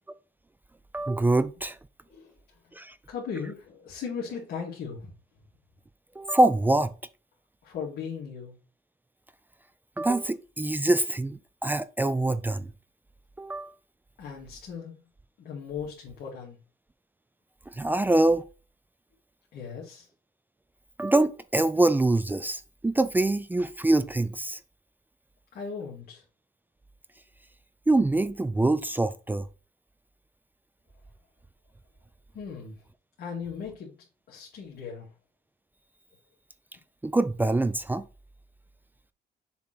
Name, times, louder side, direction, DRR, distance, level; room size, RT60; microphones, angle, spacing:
voice 1, 0.9-1.8 2.7-2.9 6.2-6.9 10.0-12.7 13.4-13.7 17.7-18.4 21.0-24.6 27.9-29.5 37.0-38.0, right 2 dB, 10° right, 0.5 m, -24 dB
voice 2, 3.1-5.1 7.6-8.5 14.2-15.1 15.4-16.6 19.5-20.1 25.5-26.2 32.3-32.8 33.2-34.0 34.3-35.1, left 6 dB, 65° left, 2.4 m, -37 dB
7.0 x 3.9 x 4.4 m
cardioid pair, 110°, 17 cm